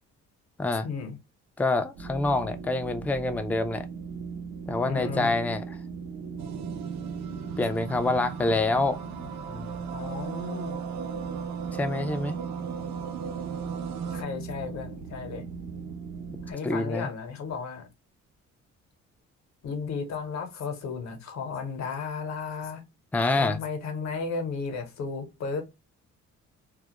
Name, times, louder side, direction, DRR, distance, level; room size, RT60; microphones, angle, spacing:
voice 1, 0.8-1.2 4.8-5.3 9.9-10.8 14.1-15.4 16.5-17.9 19.6-22.8 23.4-25.6, left 5 dB, 65° left, 0.8 m, -34 dB
voice 2, 1.6-3.9 4.7-5.8 7.6-9.0 9.5-9.7 11.7-12.4 16.6-17.1 23.1-23.6, left 2 dB, 5° left, 0.3 m, -26 dB
sound 1, 1.9-16.5, right 5 dB, 85° right, 0.8 m, -38 dB
sound 2, 6.4-14.2, right 7 dB, 60° right, 0.5 m, -39 dB
2.3 x 2.0 x 2.8 m
cardioid pair, 90°, 30 cm